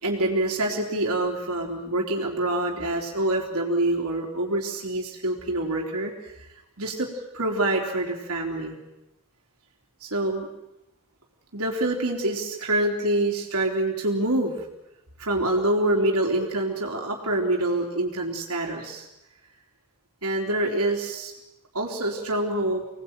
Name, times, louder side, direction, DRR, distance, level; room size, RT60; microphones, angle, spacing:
voice 1, 0.0-6.1 6.8-8.8 10.0-10.5 11.5-14.5 15.2-19.1 20.2-21.3 21.7-22.8, right 1 dB, 80° right, -1 dB, 3.5 m, -26 dB
25.5 x 19.0 x 9.0 m, 0.93 s
head